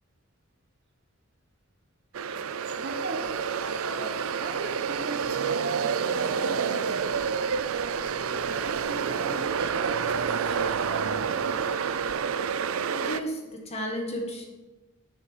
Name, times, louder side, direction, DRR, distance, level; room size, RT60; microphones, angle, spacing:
sound 1, 2.1-13.2, right 6 dB, 85° right, 0.5 m, -28 dB
voice 1, 2.8-3.4 3.8-7.3 7.7-8.0 8.3-11.7, right 3 dB, 55° right, 5 dB, 1.1 m, -39 dB
voice 2, 12.8-14.5, equal, 30° left, 1 dB, 1.7 m, -33 dB
6.9 x 6.6 x 7.4 m, 1.1 s
head